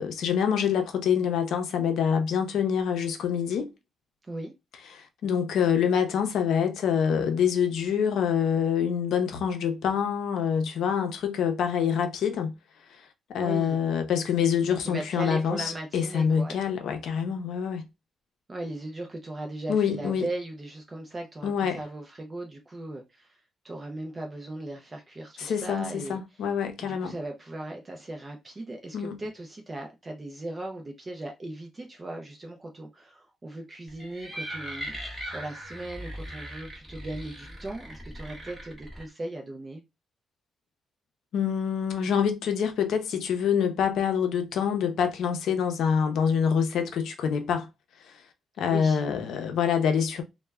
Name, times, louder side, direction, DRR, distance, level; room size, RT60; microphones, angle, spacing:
voice 1, 0.0-3.7 4.9-12.5 13.3-17.9 19.7-20.3 21.4-21.8 25.4-27.1 28.9-29.2 41.3-47.7 48.6-50.2, left 7 dB, 75° left, 0.5 m, -26 dB
voice 2, 13.4-13.8 14.7-16.6 18.5-26.4 26.8-39.8 48.7-49.0, right 2 dB, 20° right, 0.4 m, -38 dB
sound 1, 33.9-39.0, equal, 5° right, 0.7 m, -39 dB
2.1 x 2.1 x 3.3 m
cardioid pair, 170°, 0 cm